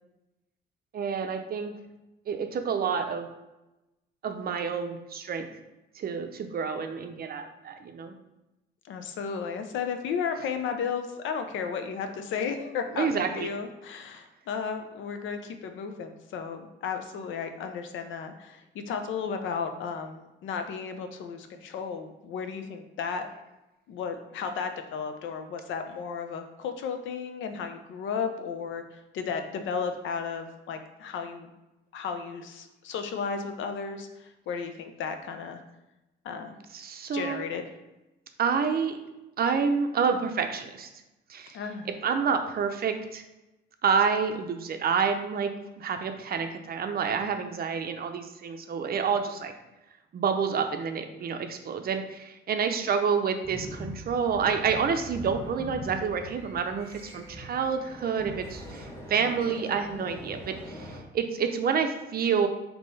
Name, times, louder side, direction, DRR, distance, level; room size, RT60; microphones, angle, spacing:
voice 1, 0.9-1.7 2.3-3.3 4.2-5.5 6.0-8.1 13.0-13.5 36.7-37.4 38.4-39.0 39.4-40.9 41.3-41.6 42.0-43.2 43.8-45.5 45.8-49.5 50.1-62.5, right 6 dB, 50° right, 6 dB, 0.5 m, -28 dB
voice 2, 8.9-23.3 23.9-31.5 31.9-35.6 36.2-36.6 37.1-37.6 41.5-41.9, left 6 dB, 75° left, 6 dB, 0.5 m, -34 dB
sound 1, 53.4-61.0, equal, 10° left, 1.4 m, -42 dB
3.6 x 2.8 x 4.0 m, 0.99 s
cardioid pair, 90°, 20 cm